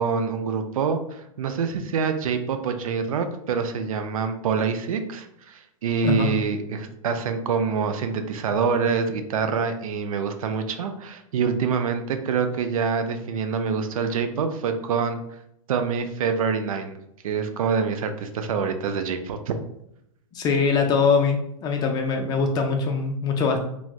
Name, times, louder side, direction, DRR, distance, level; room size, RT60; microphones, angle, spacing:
voice 1, 0.0-15.2 15.7-17.0 17.2-19.5, right 6 dB, 75° right, 7 dB, 0.4 m, -26 dB
voice 2, 20.3-23.6, left 5 dB, 25° left, 3 dB, 0.4 m, -22 dB
3.3 x 2.0 x 2.4 m, 0.78 s
hypercardioid pair, 120°, 18 cm